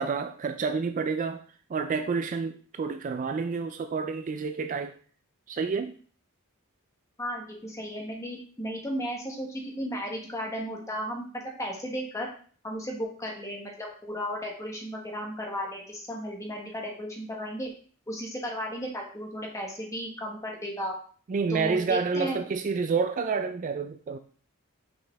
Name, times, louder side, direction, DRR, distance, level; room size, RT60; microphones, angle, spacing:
voice 1, 0.0-1.4 1.7-4.9 5.5-5.9 21.3-24.2, right 5 dB, 35° right, 8 dB, 0.3 m, -29 dB
voice 2, 7.2-12.3 12.6-17.7 18.1-21.0 21.5-22.4, equal, 15° left, -1 dB, 1.4 m, -34 dB
6.0 x 5.0 x 3.4 m, 0.44 s
head